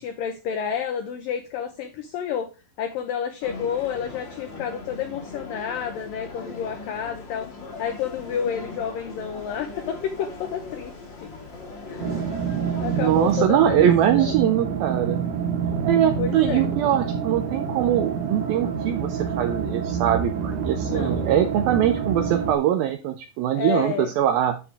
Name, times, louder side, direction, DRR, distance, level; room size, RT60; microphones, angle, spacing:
voice 1, 0.0-2.5 2.8-7.5 7.8-10.9 11.2-11.3 11.9-12.1 12.8-13.9 14.1-14.3 16.2-16.7 20.8-21.3 23.5-24.1, left 8 dB, 75° left, 6 dB, 2.1 m, -30 dB
sound 1, 3.4-13.4, left 3 dB, 40° left, 1.9 m, -39 dB
sound 2, 12.0-22.6, right 7 dB, 60° right, 2.3 m, -27 dB
voice 2, 12.9-15.2 15.8-24.6, right 10 dB, 80° right, 7 dB, 2.2 m, -22 dB
9.9 x 6.8 x 3.5 m, 0.30 s
omnidirectional pair, 5.0 m